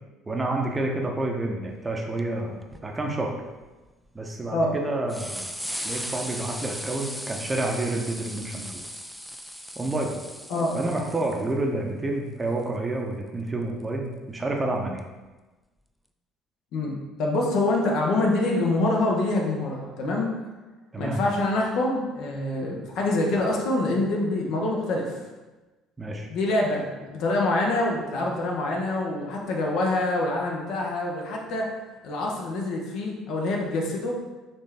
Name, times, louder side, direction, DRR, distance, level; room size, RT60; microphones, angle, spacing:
voice 1, 0.3-2.5 2.8-3.4 4.1-5.5 5.8-8.8 9.8-10.1 10.7-15.0 20.9-21.2 26.0-26.3, right 2 dB, 20° right, 1 dB, 0.8 m, -29 dB
sound 1, 1.9-2.0 2.2-2.3 2.6-2.8 3.4-4.1 4.7-4.8 5.1-11.5 13.6-13.7 15.0-15.1, equal, ahead, 0.3 m, -37 dB
voice 2, 16.7-20.3 21.0-25.2 26.3-31.7 32.0-34.2, left 2 dB, 60° left, -1 dB, 0.8 m, -25 dB
4.2 x 3.1 x 3.4 m, 1.2 s
figure-of-eight pair, 55°, 0 cm